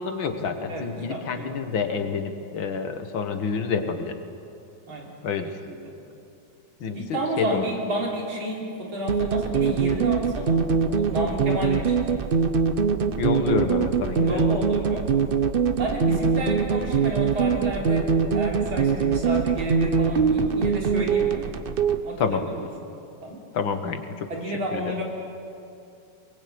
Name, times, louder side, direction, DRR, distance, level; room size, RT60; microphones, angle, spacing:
voice 1, 0.0-4.2 5.2-5.6 6.8-7.7 13.1-14.5 22.2-22.4 23.5-24.3 24.7-24.9, left 5 dB, 70° left, 7 dB, 2.2 m, -28 dB
voice 2, 0.7-1.5 4.9-5.1 5.7-5.9 6.9-12.4 14.2-15.1 15.8-21.5 22.0-22.7 23.2-23.4 24.3-25.0, right 1 dB, 75° right, -1 dB, 4.3 m, -31 dB
sound 1, 9.1-22.0, right 5 dB, 55° right, 0.6 m, -23 dB
23.0 x 21.5 x 8.7 m, 2.6 s
omnidirectional pair, 2.2 m